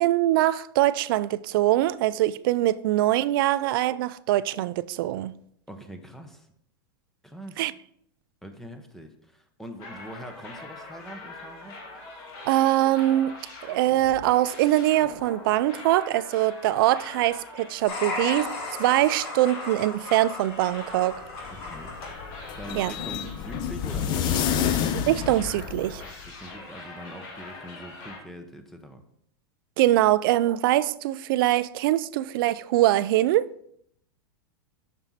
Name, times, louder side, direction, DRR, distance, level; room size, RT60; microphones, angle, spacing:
voice 1, 0.0-5.3 7.6-7.7 12.4-13.4 13.6-18.5 18.8-21.2 22.8-22.9 25.1-26.0 29.8-33.5, right 15 dB, 60° right, 0.4 m, -23 dB
voice 2, 5.7-6.5 7.2-7.7 8.4-11.8 21.5-22.0 22.6-24.7 26.3-29.0, equal, 5° left, 0.8 m, -43 dB
sound 1, 9.8-24.7 25.1-28.2, left 2 dB, 50° left, 2.1 m, -43 dB
sound 2, 17.9-22.1, left 3 dB, 70° left, 2.8 m, -35 dB
sound 3, 21.2-26.3, left 8 dB, 35° left, 0.7 m, -29 dB
7.2 x 6.1 x 4.1 m
supercardioid pair, 140°, 13 cm